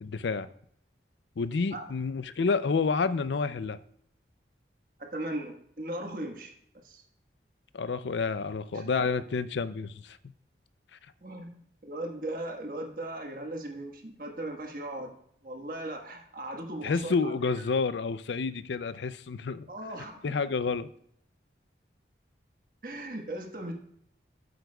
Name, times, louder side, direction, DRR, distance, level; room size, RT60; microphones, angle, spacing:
voice 1, 0.0-0.5 1.4-3.8 7.7-10.2 16.8-19.7 20.2-20.9, left 4 dB, 80° left, 0.5 m, -29 dB
voice 2, 5.0-6.5 6.8-7.0 8.7-8.9 11.2-15.1 15.4-17.4 19.7-20.3 22.8-23.7, right 1 dB, 50° right, 1.4 m, -38 dB
13.0 x 7.9 x 2.3 m
head